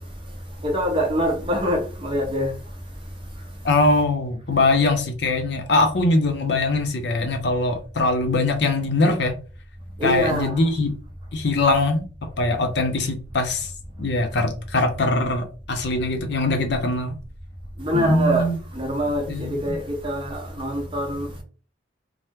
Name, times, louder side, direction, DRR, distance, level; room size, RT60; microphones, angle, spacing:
voice 1, 0.6-2.5 10.0-10.7 17.8-21.4, equal, 25° right, 0.7 m, -25 dB
voice 2, 3.6-9.4 10.0-10.9 11.3-12.0 12.4-13.7 14.0-17.1 17.9-18.6 19.3-19.5, left 2 dB, 55° left, 0.6 m, -22 dB
2.8 x 2.0 x 3.4 m
head